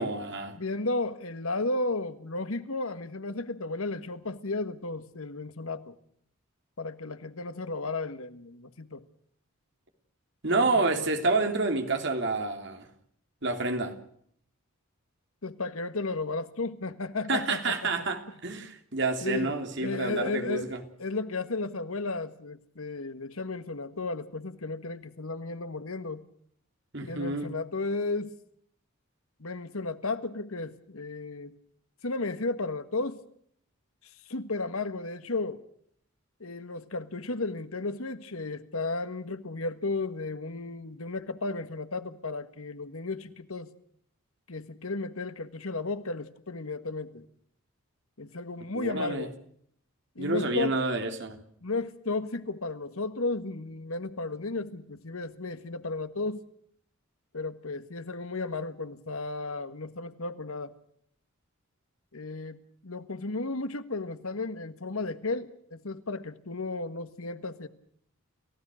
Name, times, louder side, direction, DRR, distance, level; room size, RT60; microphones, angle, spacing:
voice 1, 0.0-0.6 10.4-12.9 13.4-13.9 17.3-20.8 26.9-27.5 48.7-49.3 50.2-51.4, right 3 dB, 55° right, 3.2 m, -29 dB
voice 2, 0.5-5.9 6.8-9.0 10.7-11.1 15.4-17.9 19.2-19.5 19.8-20.7 21.0-26.2 27.0-28.3 29.4-31.5 32.0-33.2 34.3-35.6 36.4-43.7 44.5-47.2 48.2-49.3 50.1-50.8 51.6-56.4 57.3-60.7 62.1-67.7, left 3 dB, 80° left, 1.6 m, -34 dB
30.0 x 16.0 x 6.4 m
head